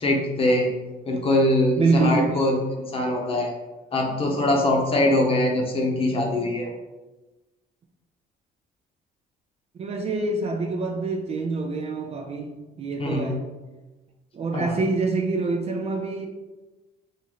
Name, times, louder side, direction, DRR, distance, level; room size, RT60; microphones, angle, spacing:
voice 1, 0.0-0.7 1.0-3.5 3.9-6.7 13.0-13.4 14.5-14.8, left 1 dB, 35° left, 0.9 m, -22 dB
voice 2, 1.8-2.4 4.9-5.2 9.7-13.4 14.3-16.3, right 3 dB, 40° right, 0.4 m, -26 dB
3.1 x 2.6 x 3.8 m
cardioid pair, 110°, 17 cm